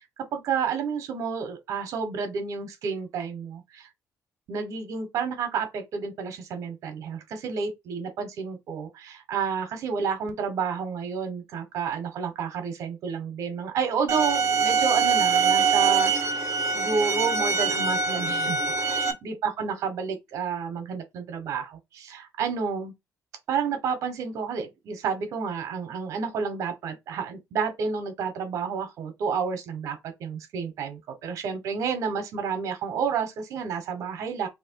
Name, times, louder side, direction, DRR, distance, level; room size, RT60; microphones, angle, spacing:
voice 1, 0.3-3.9 4.5-16.5 16.7-18.6 18.9-22.9 23.5-34.5, right 6 dB, 65° right, 1.2 m, -30 dB
sound 1, 14.1-19.1, right 5 dB, 45° right, 0.9 m, -24 dB
3.2 x 2.8 x 4.5 m
cardioid pair, 175°, 6 cm